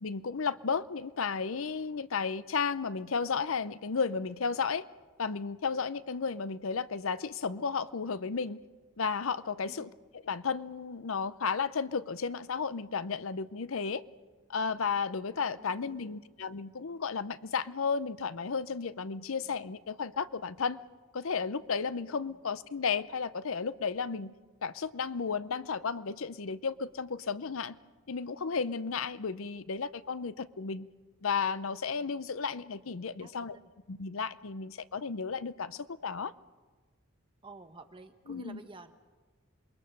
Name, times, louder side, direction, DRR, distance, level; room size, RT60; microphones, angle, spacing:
voice 1, 0.0-4.9 5.2-8.6 9.0-9.9 10.2-14.0 14.5-20.8 21.1-24.3 24.6-27.8 28.1-30.9 31.2-33.6 33.9-36.3 38.3-38.6, left 5 dB, 70° left, 0.6 m, -33 dB
voice 2, 9.7-10.0 15.6-16.2 22.3-22.4 33.2-33.7 37.4-38.9, right 2 dB, 25° right, 1.1 m, -51 dB
27.5 x 21.5 x 6.7 m
head